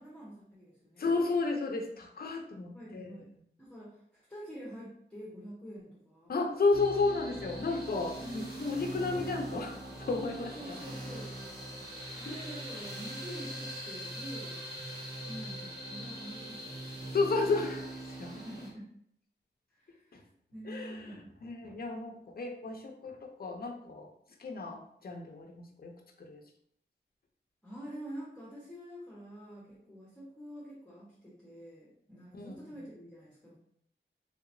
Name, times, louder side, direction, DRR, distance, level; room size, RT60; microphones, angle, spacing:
voice 1, 0.0-1.1 2.7-3.3 3.6-6.4 8.2-8.4 9.1-9.6 10.5-11.3 12.1-14.7 15.1-17.4 18.3-18.9 19.7-20.2 20.5-21.3 27.6-33.6, equal, 5° left, -9 dB, 1.0 m, -46 dB
voice 2, 1.0-3.2 6.3-9.8 10.1-10.8 12.3-12.5 17.1-18.4 20.1-20.2 20.6-24.1 24.4-26.4 32.3-32.6, left 3 dB, 55° left, 3 dB, 0.6 m, -33 dB
sound 1, 6.7-18.7, right 1 dB, 60° right, 1.3 m, -42 dB
3.4 x 2.8 x 2.6 m, 0.68 s
wide cardioid pair, 120°, 19 cm